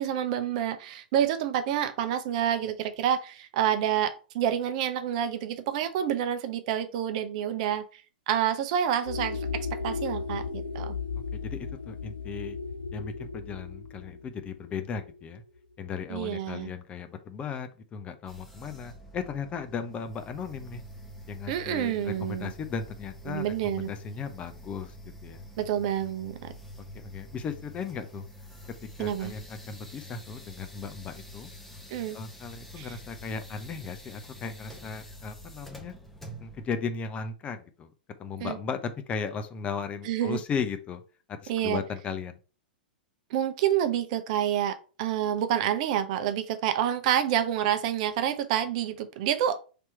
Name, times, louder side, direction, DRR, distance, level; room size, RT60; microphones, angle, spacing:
voice 1, 0.0-8.0 8.3-11.0 16.1-16.7 21.5-22.5 23.3-23.9 25.6-26.5 29.0-29.3 31.9-32.2 32.8-32.9 38.4-38.6 40.0-40.4 41.5-41.8 43.3-49.6, right 10 dB, 50° right, 0.6 m, -28 dB
sound 1, 9.1-15.6, left 4 dB, 85° left, 0.3 m, -35 dB
voice 2, 11.3-12.6 12.9-15.4 15.8-20.8 21.3-24.9 25.2-25.4 26.8-28.3 29.0-31.5 32.1-35.9 36.4-37.9 38.2-41.0 41.4-42.4, left 6 dB, 25° left, 0.5 m, -36 dB
sound 2, 18.3-36.7, equal, 5° left, 0.9 m, -47 dB
3.4 x 2.9 x 4.4 m
figure-of-eight pair, 100°, 5 cm